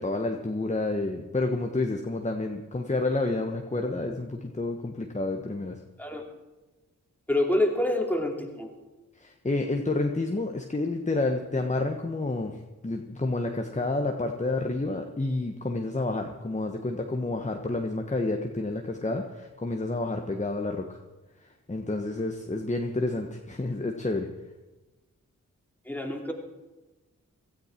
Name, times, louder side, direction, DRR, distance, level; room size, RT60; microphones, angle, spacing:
voice 1, 0.0-5.8 9.2-21.0 21.4-24.3, left 2 dB, 20° left, 3 dB, 1.3 m, -29 dB
voice 2, 7.3-8.7 25.9-26.3, left 1 dB, 5° left, 1 dB, 2.8 m, -27 dB
17.0 x 13.0 x 4.5 m, 1.1 s
cardioid pair, 40°, 33 cm